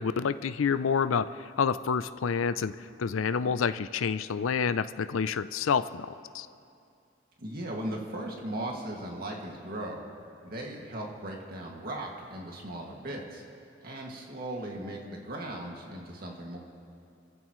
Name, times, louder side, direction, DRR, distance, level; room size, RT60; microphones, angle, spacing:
voice 1, 0.0-6.5, left 6 dB, 85° left, 13 dB, 0.5 m, -28 dB
voice 2, 7.4-10.0 10.4-13.4 13.8-16.6, right 1 dB, 50° right, -1 dB, 2.1 m, -37 dB
29.5 x 15.5 x 3.1 m, 2.5 s
head